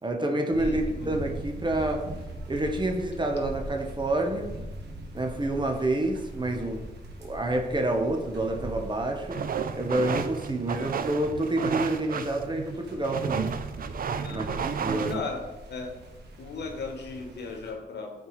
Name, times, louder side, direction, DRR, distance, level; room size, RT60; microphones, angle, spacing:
voice 1, 0.0-2.1 2.5-4.5 5.1-6.9 7.2-9.4 9.7-13.6 14.3-14.4 14.8-15.2, right 1 dB, 25° right, 3 dB, 1.0 m, -28 dB
voice 2, 0.5-1.1 14.2-14.7 15.1-15.4 15.7-15.9 16.4-18.3, left 4 dB, 85° left, 3 dB, 1.1 m, -37 dB
sound 1, 0.5-17.7, right 1 dB, 85° right, 1.2 m, -41 dB
sound 2, 9.3-15.1, right 6 dB, 55° right, 0.5 m, -32 dB
8.1 x 4.4 x 3.2 m, 1.1 s
cardioid pair, 70°, 17 cm